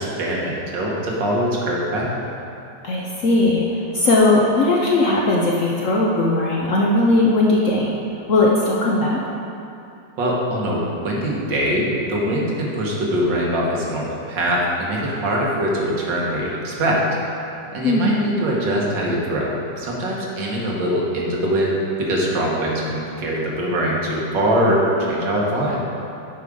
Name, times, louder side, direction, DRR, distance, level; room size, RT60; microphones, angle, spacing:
voice 1, 0.0-2.2 10.2-17.0 17.7-25.8, equal, 80° right, -3 dB, 2.0 m, -22 dB
voice 2, 2.8-3.7 3.9-7.9 8.3-9.2 17.8-18.1, left 2 dB, 60° left, -3 dB, 0.8 m, -18 dB
8.3 x 4.9 x 5.3 m, 2.7 s
omnidirectional pair, 2.0 m